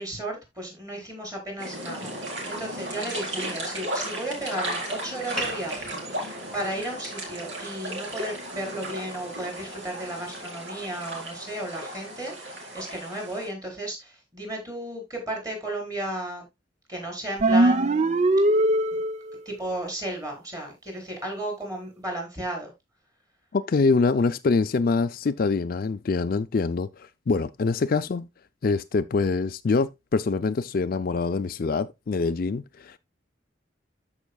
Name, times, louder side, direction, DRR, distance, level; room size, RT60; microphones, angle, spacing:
voice 1, 0.0-16.4 16.9-18.2 18.9-19.0 19.4-22.7, right 1 dB, 20° right, 4.3 m, -34 dB
sound 1, 1.6-13.5, right 1 dB, 75° right, 4.2 m, -35 dB
sound 2, 5.4-10.4, right 1 dB, ahead, 1.5 m, -43 dB
sound 3, 17.4-19.4, right 1 dB, 35° right, 0.5 m, -20 dB
voice 2, 23.5-28.3 28.6-33.0, left 4 dB, 50° left, 0.4 m, -25 dB
13.5 x 5.6 x 2.3 m
head